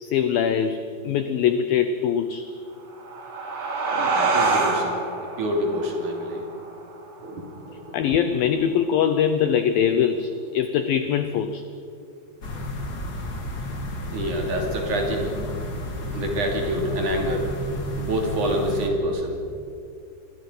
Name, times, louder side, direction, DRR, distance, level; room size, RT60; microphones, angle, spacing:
voice 1, 0.0-2.5 7.9-11.6, left 8 dB, 85° left, 10 dB, 2.0 m, -22 dB
sound 1, 2.8-8.0, right 3 dB, 65° right, 4.8 m, -27 dB
voice 2, 3.9-5.0 5.4-6.4 7.2-8.0 14.1-15.3 16.1-17.5 18.0-19.4, equal, 50° right, 1 dB, 3.7 m, -27 dB
sound 2, 12.4-18.9, left 1 dB, 65° left, 0.9 m, -32 dB
27.5 x 21.5 x 5.6 m, 2.5 s
omnidirectional pair, 5.3 m